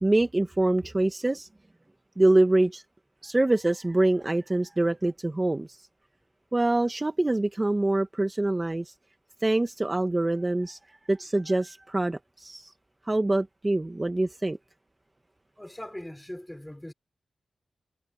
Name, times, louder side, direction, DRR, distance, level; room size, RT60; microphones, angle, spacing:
voice 1, 0.0-1.5 2.2-2.8 3.2-5.8 6.5-8.9 9.4-10.8 11.1-12.7 13.1-14.6, right 2 dB, 20° right, 1.2 m, -25 dB
voice 2, 15.6-16.9, left 1 dB, 10° left, 3.9 m, -40 dB
wide cardioid pair, 85°, 0 cm